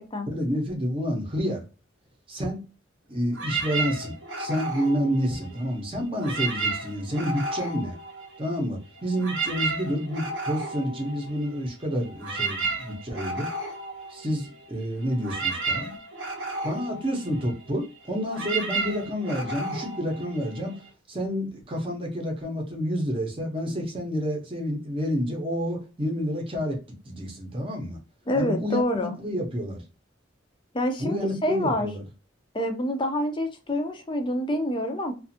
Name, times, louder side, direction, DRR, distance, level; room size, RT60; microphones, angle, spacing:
voice 1, 0.2-1.6 2.3-2.6 3.1-8.0 8.4-13.5 14.1-15.9 16.6-20.8 21.1-26.8 27.1-28.0 28.3-29.8 31.0-32.0, equal, 30° right, 1 dB, 0.8 m, -29 dB
sound 1, 3.3-5.8 6.1-8.7 9.0-20.9, right 3 dB, 90° right, 0.8 m, -33 dB
voice 2, 28.3-29.1 30.7-31.9 32.5-35.1, left 1 dB, 25° left, 5 dB, 0.5 m, -27 dB
2.5 x 2.4 x 2.6 m, 0.33 s
head